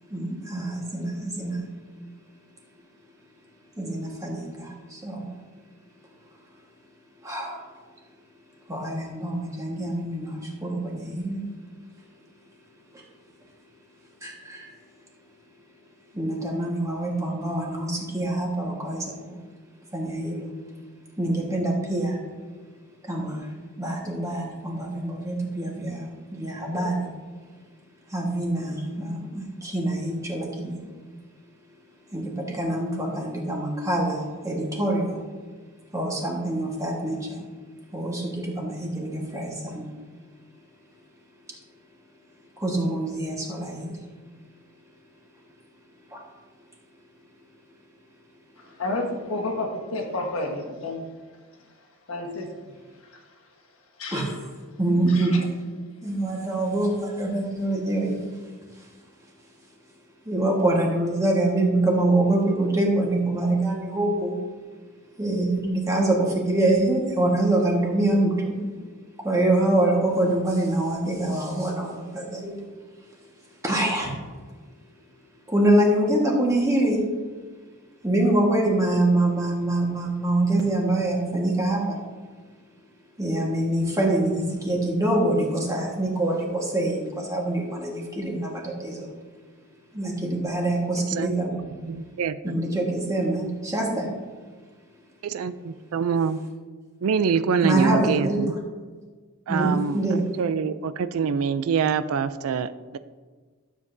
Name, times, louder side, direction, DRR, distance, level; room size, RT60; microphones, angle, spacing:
voice 1, 0.1-1.7 3.8-5.3 7.2-7.6 8.7-11.4 12.9-13.0 14.2-14.7 16.1-19.4 19.9-20.5 21.2-22.2 23.0-23.5 23.8-27.1 28.1-30.8 32.1-35.2 35.9-37.4 37.9-39.9 42.6-44.0 46.1-46.2 54.1-54.4 54.8-55.4 56.0-58.3 58.8-58.9 60.2-64.4 65.2-68.6 69.2-72.6 73.6-74.2 75.5-77.0 78.0-82.0 83.2-89.1 89.9-91.6 92.4-94.1 97.6-98.4 99.5-100.2, right 1 dB, 15° right, -2 dB, 1.4 m, -25 dB
voice 2, 48.8-51.0 52.1-52.5 54.0-54.3 55.1-55.4, left 2 dB, 70° left, 2 dB, 1.4 m, -30 dB
voice 3, 91.8-92.5 95.2-96.4 97.0-98.6 99.5-103.0, right 6 dB, 75° right, 13 dB, 0.4 m, -25 dB
12.5 x 7.4 x 2.7 m, 1.4 s
head